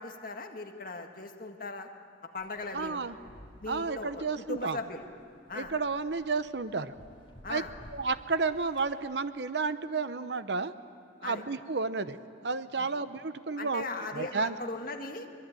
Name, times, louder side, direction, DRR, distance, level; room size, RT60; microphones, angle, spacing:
voice 1, 0.0-1.9 2.3-3.0 3.6-5.0 5.5-5.7 7.4-7.7 11.2-11.4 12.8-12.9 13.6-15.3, left 3 dB, 50° left, 3 dB, 1.8 m, -39 dB
sound 1, 2.4-9.0, equal, 30° left, 3.9 m, -55 dB
voice 2, 2.7-3.2 3.7-4.8 5.5-6.9 7.5-7.6 7.9-10.7 11.2-12.2 12.4-13.8 14.1-14.6, right 4 dB, 65° right, 12 dB, 0.9 m, -31 dB
23.0 x 22.0 x 9.1 m, 2.3 s
head